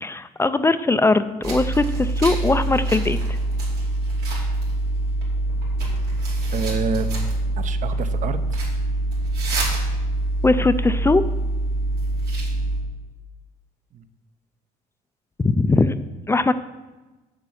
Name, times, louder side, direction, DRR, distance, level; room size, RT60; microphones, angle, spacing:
voice 1, 0.0-3.2 10.4-11.2 15.4-15.9 16.3-16.5, left 3 dB, 15° left, 12 dB, 0.4 m, -20 dB
sound 1, 1.4-12.8, right 2 dB, 70° right, 3.1 m, -24 dB
voice 2, 6.5-7.1 7.6-8.7 13.9-14.0, right 5 dB, 50° right, 10 dB, 0.8 m, -28 dB
7.5 x 7.2 x 6.3 m, 1.1 s
cardioid pair, 110°, 17 cm